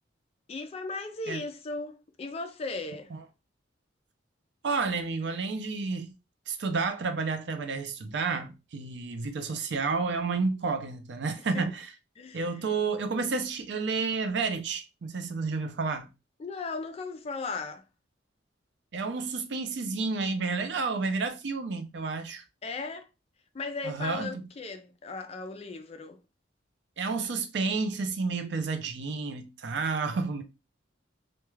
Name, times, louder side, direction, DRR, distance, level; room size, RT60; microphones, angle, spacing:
voice 1, 0.5-3.1 11.5-11.7 12.2-12.4 16.4-17.8 22.6-23.1 23.5-26.2, left 3 dB, 35° left, 0.3 m, -37 dB
voice 2, 4.6-6.1 6.5-11.9 12.3-16.1 18.9-22.4 23.8-24.4 27.0-30.4, right 4 dB, 65° right, 0.5 m, -30 dB
2.3 x 2.2 x 3.1 m
head